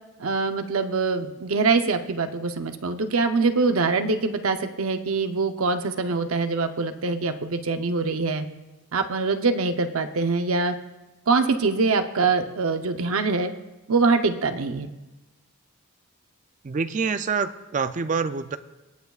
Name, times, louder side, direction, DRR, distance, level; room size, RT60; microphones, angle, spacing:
voice 1, 0.2-8.5 8.9-10.7 11.3-13.5 13.9-14.9, right 4 dB, 75° right, 7 dB, 0.7 m, -24 dB
voice 2, 16.6-18.6, right 5 dB, 35° right, 11 dB, 0.4 m, -26 dB
21.5 x 8.1 x 2.4 m, 1.1 s
head